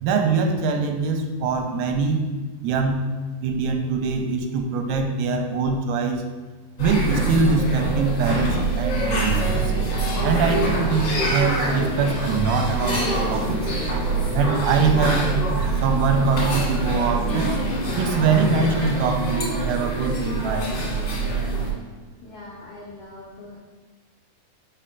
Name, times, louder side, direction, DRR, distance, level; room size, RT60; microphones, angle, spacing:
voice 1, 0.0-2.2 2.6-3.0 3.4-6.2 6.8-9.6 10.2-13.6 14.3-15.4 15.8-17.6 18.0-20.7, right 4 dB, 90° right, 5 dB, 2.7 m, -23 dB
sound 1, 6.8-21.7, right 2 dB, 50° left, 2.5 m, -24 dB
voice 2, 22.2-23.6, left 2 dB, 75° left, -6 dB, 1.7 m, -42 dB
6.1 x 4.6 x 4.5 m, 1.3 s
omnidirectional pair, 4.5 m